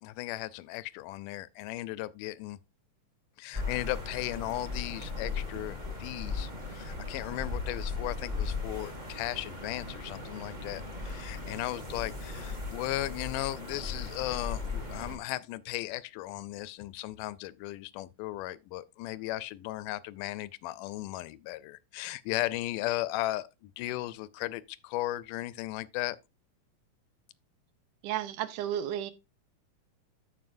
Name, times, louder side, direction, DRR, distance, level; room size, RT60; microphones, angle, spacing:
voice 1, 0.0-2.6 3.4-26.2, left 16 dB, 85° left, 2.1 m, -36 dB
sound 1, 3.5-15.2, left 3 dB, 20° right, 1.3 m, -37 dB
voice 2, 28.0-29.1, right 11 dB, 80° right, 2.2 m, -33 dB
13.5 x 5.1 x 2.5 m
omnidirectional pair, 3.7 m